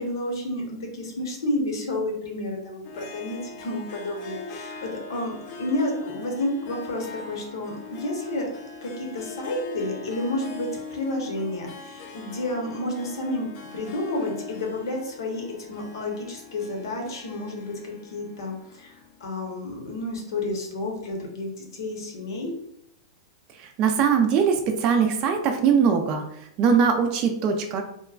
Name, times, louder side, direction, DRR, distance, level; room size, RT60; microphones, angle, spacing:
voice 1, 0.0-8.5 8.8-22.5, left 1 dB, 80° left, 1 dB, 0.9 m, -31 dB
Harp, 2.8-19.3, left 4 dB, 40° left, 0.4 m, -41 dB
voice 2, 23.5-27.8, right 6 dB, 35° right, 4 dB, 0.4 m, -22 dB
2.9 x 2.2 x 2.4 m, 0.77 s
hypercardioid pair, 130°, 2 cm